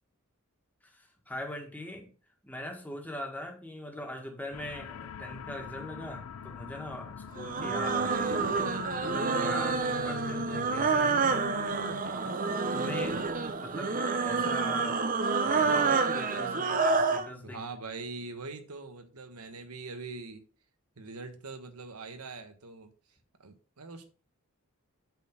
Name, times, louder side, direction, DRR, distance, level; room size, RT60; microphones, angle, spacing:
voice 1, 0.8-2.1 2.4-8.6 9.0-11.4 12.0-12.2 12.7-13.3 13.6-17.6, left 1 dB, 5° left, 1.8 m, -41 dB
sound 1, 4.5-12.0, left 7 dB, 80° left, 0.5 m, -44 dB
sound 2, 7.4-17.3, right 4 dB, 40° right, 0.8 m, -28 dB
voice 2, 17.4-20.4 21.0-22.9 23.4-24.1, right 3 dB, 85° right, 1.3 m, -42 dB
8.1 x 4.4 x 5.4 m
head